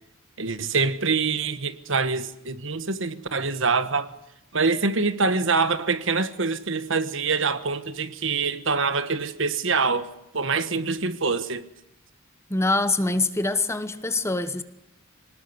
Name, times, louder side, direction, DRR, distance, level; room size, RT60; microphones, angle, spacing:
voice 1, 0.4-4.1 4.5-11.6, right 4 dB, 65° right, 1.4 m, -25 dB
voice 2, 12.5-14.6, left 2 dB, 15° left, 1.1 m, -24 dB
25.0 x 19.5 x 9.6 m
head